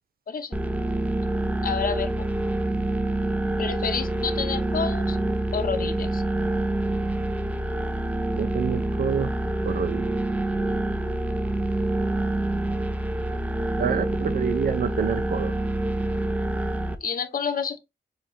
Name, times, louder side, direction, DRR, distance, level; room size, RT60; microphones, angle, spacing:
voice 1, 0.3-0.6 1.6-2.3 3.6-5.2 5.5-6.2 17.0-17.8, left 6 dB, 55° left, 0.7 m, -29 dB
sound 1, 0.5-16.9, right 1 dB, 10° right, 0.5 m, -26 dB
voice 2, 8.4-9.3 9.6-10.1 13.8-15.5, right 7 dB, 60° right, 0.5 m, -27 dB
6.3 x 2.6 x 2.8 m
wide cardioid pair, 115°, 17 cm